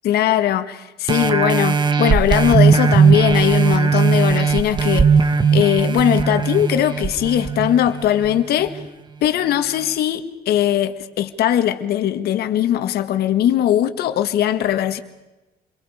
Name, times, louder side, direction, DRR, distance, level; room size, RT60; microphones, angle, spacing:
voice 1, 0.0-5.1 5.5-8.8 9.2-15.0, left 11 dB, 70° left, 1.6 m, -20 dB
sound 1, 1.1-8.3 8.8-8.9, right 5 dB, 25° right, 1.3 m, -17 dB
28.0 x 22.5 x 4.9 m
cardioid pair, 110°, 17 cm